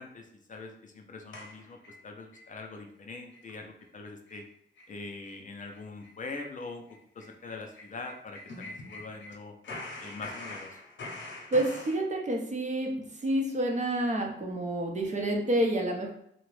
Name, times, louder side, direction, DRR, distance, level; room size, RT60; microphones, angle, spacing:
voice 1, 0.0-1.8 2.0-4.4 4.9-6.8 7.1-9.5 10.0-10.8, left 3 dB, 45° left, 3 dB, 0.4 m, -43 dB
sound 1, 1.3-2.5 2.8-2.9 3.3-3.5 3.8-3.9 4.3-4.4 4.8-4.9 5.2-5.4 5.7-9.4 9.6-12.0, left 2 dB, 80° left, 0.7 m, -44 dB
voice 2, 11.5-12.9 13.2-16.1, right 1 dB, 40° right, 1 dB, 0.6 m, -28 dB
2.8 x 2.0 x 3.0 m, 0.70 s
wide cardioid pair, 105°, 19 cm